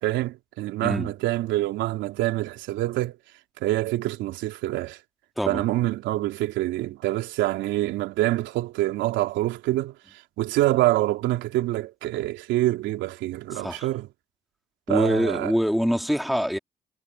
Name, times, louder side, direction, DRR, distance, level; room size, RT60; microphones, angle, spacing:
voice 1, 0.0-3.2 3.6-5.0 5.5-9.9 10.4-14.1 14.9-15.5, right 16 dB, 85° right, 3.4 m, -26 dB
voice 2, 0.8-1.1 5.4-5.6 13.5-13.9 14.9-16.6, equal, ahead, 3.4 m, -24 dB
supercardioid pair, 50°, 19 cm